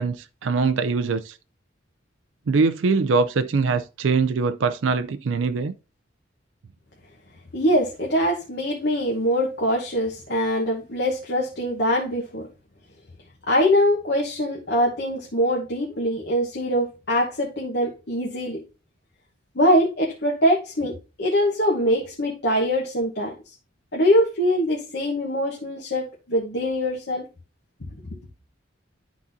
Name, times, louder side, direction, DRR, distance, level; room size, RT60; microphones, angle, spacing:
voice 1, 0.0-1.4 2.5-5.7, right 4 dB, 85° right, 0.4 m, -22 dB
voice 2, 7.5-12.5 13.5-18.6 19.5-23.5 23.9-27.2, equal, 60° left, 1.2 m, -23 dB
11.5 x 4.0 x 2.6 m
head